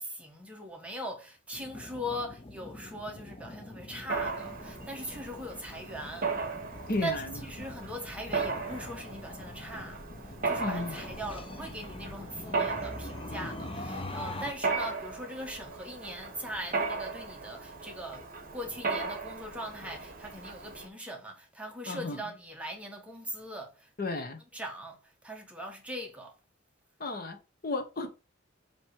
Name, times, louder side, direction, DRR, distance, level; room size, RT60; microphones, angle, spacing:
voice 1, 0.0-6.3 7.0-10.0 10.5-18.3 18.5-23.9 24.5-25.0 25.2-26.3, equal, 5° right, 1.3 m, -40 dB
sound 1, 1.5-14.5, left 2 dB, 30° left, 0.7 m, -43 dB
Mechanisms, 4.1-20.9, right 4 dB, 45° right, 1.2 m, -37 dB
voice 2, 6.9-7.4 10.6-11.0 21.9-22.2 24.0-24.4 27.0-27.4 27.6-28.1, left 2 dB, 50° left, 1.1 m, -33 dB
7.4 x 3.2 x 4.7 m
head